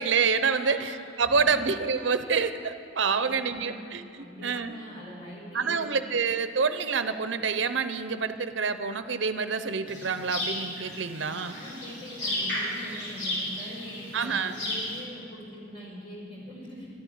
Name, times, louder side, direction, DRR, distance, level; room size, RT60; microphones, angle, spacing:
voice 1, 0.0-4.8 5.5-11.6 14.1-14.5, right 5 dB, 75° right, 10 dB, 0.7 m, -27 dB
voice 2, 0.5-1.7 3.1-3.8 4.2-5.9 11.5-16.9, equal, 30° left, -5 dB, 5.2 m, -43 dB
sound 1, 9.9-15.0, left 1 dB, 65° left, 4.2 m, -34 dB
13.0 x 11.5 x 9.3 m, 2.3 s
head